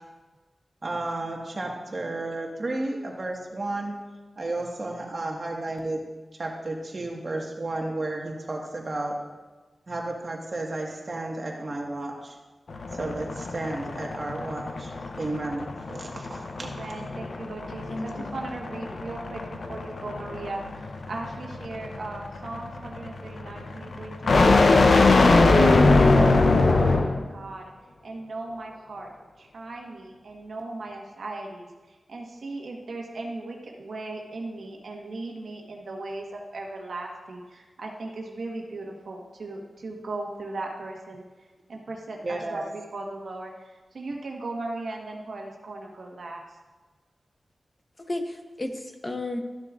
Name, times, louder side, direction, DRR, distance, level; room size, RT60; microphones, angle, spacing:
voice 1, 0.8-3.9 4.4-6.0 6.4-9.2 9.9-12.4 12.9-16.9 42.2-42.6, right 2 dB, 45° right, 0 dB, 1.5 m, -32 dB
sound 1, 12.7-27.3, left 3 dB, 70° left, 0.6 m, -22 dB
voice 2, 16.6-24.8 25.4-27.7 28.0-29.1 29.4-41.2 41.7-46.4, right 2 dB, 85° right, 0 dB, 1.3 m, -37 dB
voice 3, 17.9-18.4 48.0-49.4, left 1 dB, 30° left, 5 dB, 0.8 m, -33 dB
13.0 x 6.8 x 2.4 m, 1.2 s
wide cardioid pair, 70°, 0 cm